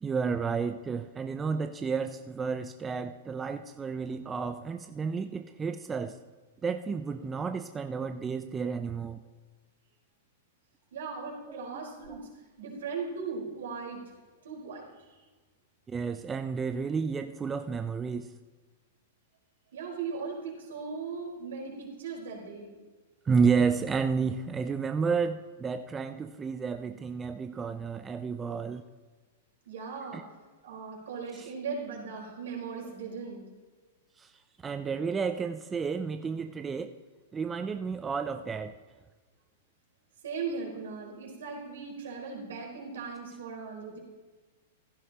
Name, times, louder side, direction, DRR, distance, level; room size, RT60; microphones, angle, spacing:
voice 1, 0.0-6.2 6.6-9.2 11.5-11.9 15.9-18.3 23.3-28.8 30.1-30.2 31.3-31.5 34.2-34.3 34.6-36.9 37.3-38.8, right 5 dB, 15° right, 8 dB, 0.5 m, -31 dB
voice 2, 10.9-12.3 12.6-14.0 14.4-15.2 19.7-22.8 29.7-30.2 30.6-33.4 40.2-44.0, right 5 dB, 75° right, -2 dB, 4.4 m, -38 dB
16.0 x 11.0 x 3.0 m, 1.3 s
hypercardioid pair, 115°, 0 cm